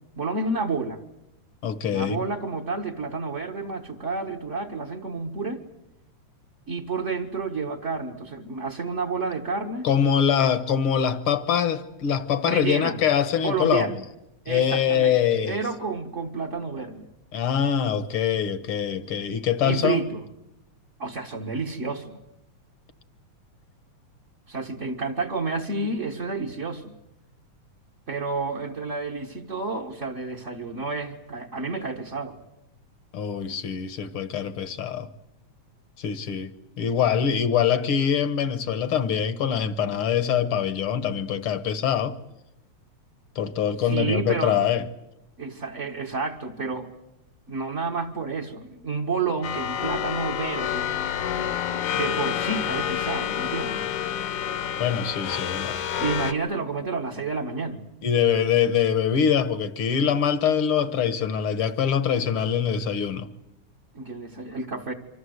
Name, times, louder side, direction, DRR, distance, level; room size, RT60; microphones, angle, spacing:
voice 1, 0.1-1.0 1.9-5.6 6.7-9.9 12.4-13.0 13.4-14.0 14.4-15.2 15.5-17.1 19.6-20.2 21.0-22.2 24.5-26.9 28.1-32.4 43.8-44.6 45.4-46.9 47.5-50.9 51.9-53.9 56.0-57.8 63.9-64.9, right 4 dB, 35° right, 1.3 m, -30 dB
voice 2, 1.6-2.2 9.8-13.9 14.5-15.6 17.3-20.0 33.1-35.1 36.0-42.2 43.3-44.8 54.8-55.8 58.0-63.3, left 8 dB, 55° left, 1.7 m, -24 dB
sound 1, 49.4-56.3, left 9 dB, 80° left, 2.8 m, -28 dB
26.5 x 25.0 x 8.0 m
omnidirectional pair, 3.4 m